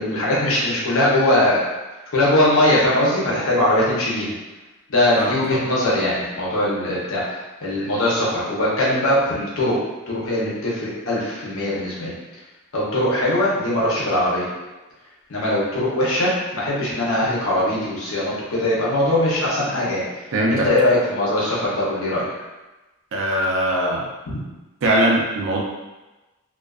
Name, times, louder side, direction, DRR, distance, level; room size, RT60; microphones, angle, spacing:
voice 1, 0.0-1.6 2.1-4.3 4.9-9.8 10.1-12.1 12.7-14.5 15.3-20.0 20.5-22.2 24.3-24.4, left 1 dB, 60° left, -6 dB, 0.7 m, -21 dB
voice 2, 5.2-5.7 20.3-20.7 23.1-24.1 24.8-25.6, right 1 dB, 60° right, -2 dB, 0.5 m, -21 dB
2.4 x 2.4 x 2.3 m, 1.1 s
head